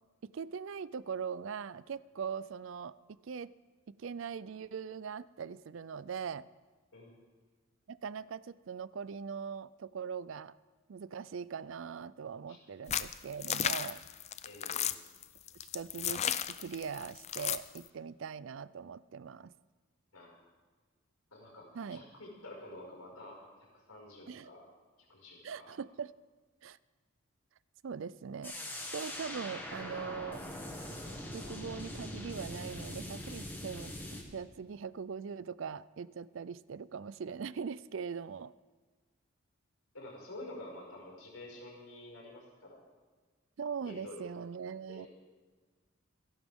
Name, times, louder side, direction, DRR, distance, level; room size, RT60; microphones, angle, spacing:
voice 1, 0.3-2.9 3.2-3.5 3.9-6.5 7.9-10.5 10.9-14.0 15.7-16.2 16.5-19.5 21.7-22.0 24.3-24.5 25.4-26.1 26.6-26.8 27.8-28.6 28.9-30.4 31.3-33.9 34.3-38.5 43.6-45.1, right 6 dB, 60° right, 18 dB, 0.4 m, -41 dB
sound 1, 12.9-17.8, left 10 dB, 30° left, 0.4 m, -33 dB
voice 2, 14.4-14.9 20.1-20.4 21.3-24.7 25.1-25.7 39.9-42.8 43.8-44.2 44.9-45.1, left 1 dB, 85° left, -3 dB, 5.5 m, -49 dB
sound 2, 28.4-34.2, left 1 dB, 10° left, 1.8 m, -42 dB
27.0 x 11.5 x 3.6 m, 1.3 s
head